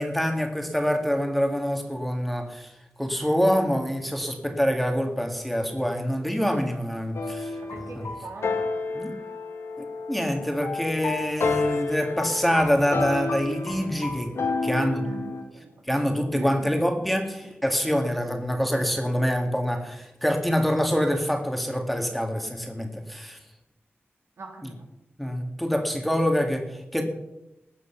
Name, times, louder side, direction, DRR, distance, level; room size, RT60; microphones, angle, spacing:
voice 1, 0.0-2.7 3.0-8.0 8.9-9.1 10.1-14.3 14.6-15.0 15.9-23.4 25.2-27.0, equal, ahead, 3 dB, 2.0 m, -25 dB
sound 1, 7.1-15.4, left 4 dB, 85° left, 2.2 m, -30 dB
voice 2, 7.7-8.6 14.6-15.8 16.3-16.8 17.4-17.5 24.4-24.8, right 3 dB, 85° right, 1 dB, 3.2 m, -40 dB
20.0 x 8.4 x 5.8 m, 0.90 s
wide cardioid pair, 125°, 4 cm